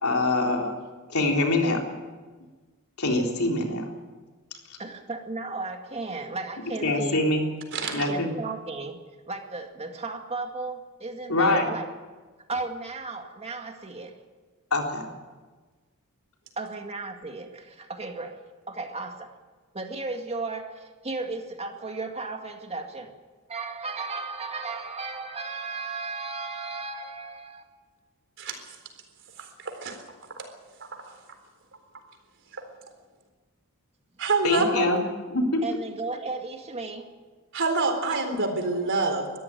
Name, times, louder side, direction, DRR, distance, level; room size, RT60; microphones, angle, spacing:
voice 1, 0.0-0.8 1.1-1.8 3.0-3.9 6.8-7.4 7.9-8.3 11.3-11.7 14.7-15.1 34.4-35.0 35.3-35.6, left 2 dB, 70° left, 1 dB, 3.8 m, -24 dB
voice 2, 4.8-7.3 7.9-9.0 9.3-11.9 12.5-14.2 16.6-19.4 19.7-23.1 23.5-27.7 34.7-35.1 35.6-37.1, right 3 dB, 30° right, 4 dB, 2.0 m, -35 dB
voice 3, 7.7-8.1 28.4-28.6 29.4-30.0 34.2-34.7 37.5-39.3, right 3 dB, 60° right, 5 dB, 4.0 m, -26 dB
22.5 x 14.0 x 9.2 m, 1.3 s
head